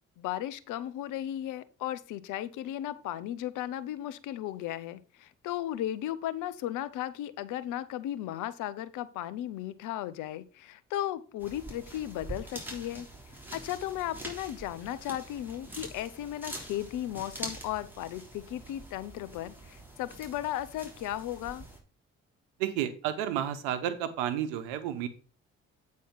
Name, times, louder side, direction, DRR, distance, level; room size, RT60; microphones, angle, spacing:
voice 1, 0.2-13.1 13.5-21.6, left 12 dB, 75° left, 15 dB, 0.7 m, -35 dB
sound 1, 11.4-21.8, right 1 dB, 5° right, 3.5 m, -45 dB
voice 2, 22.6-25.1, right 10 dB, 85° right, 11 dB, 0.9 m, -31 dB
8.5 x 4.3 x 5.7 m, 0.38 s
hypercardioid pair, 50°, 32 cm